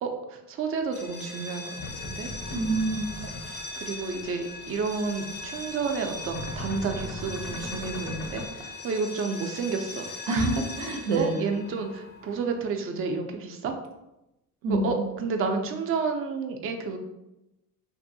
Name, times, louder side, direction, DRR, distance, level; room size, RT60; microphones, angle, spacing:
voice 1, 0.0-1.8 2.0-2.3 3.5-10.1 11.1-13.7 14.7-17.0, right 4 dB, 35° right, 4 dB, 0.4 m, -31 dB
sound 1, 0.9-12.6, left 3 dB, 25° left, 0.5 m, -40 dB
sound 2, 1.8-3.6 4.0-4.3 4.6-4.8 5.1-8.5, left 1 dB, 85° left, 0.9 m, -38 dB
voice 2, 2.5-3.0 10.3-11.4 14.6-15.0, right 2 dB, 85° right, 3 dB, 0.6 m, -26 dB
2.6 x 2.6 x 2.6 m, 0.93 s
supercardioid pair, 80°, 39 cm